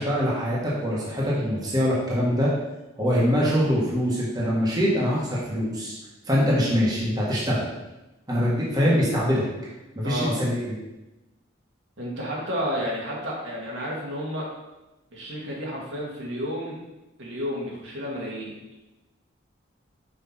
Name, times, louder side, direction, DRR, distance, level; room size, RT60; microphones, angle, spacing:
voice 1, 0.0-2.5 3.0-5.9 6.2-7.7 8.3-9.4 9.9-10.7, equal, 20° right, -7 dB, 1.5 m, -23 dB
voice 2, 10.0-10.4 12.0-14.5 15.1-16.8 17.2-18.6, equal, 70° right, -4 dB, 1.9 m, -31 dB
5.7 x 5.2 x 4.2 m, 1.0 s
head